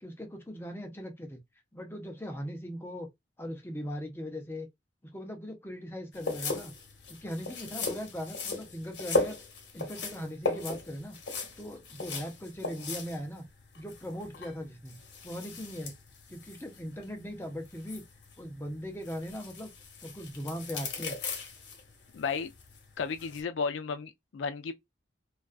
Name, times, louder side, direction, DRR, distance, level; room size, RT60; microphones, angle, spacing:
voice 1, 0.0-1.4 1.7-3.1 3.4-4.7 5.1-6.7 7.1-9.4 9.7-11.2 11.6-13.4 13.8-15.9 16.3-18.0 18.4-19.7 20.0-21.2, equal, 10° left, 0.5 m, -39 dB
sound 1, 6.1-23.4, left 3 dB, 60° left, 0.8 m, -38 dB
voice 2, 22.1-22.5 23.0-24.7, left 5 dB, 80° left, 0.4 m, -33 dB
2.3 x 2.3 x 2.3 m
head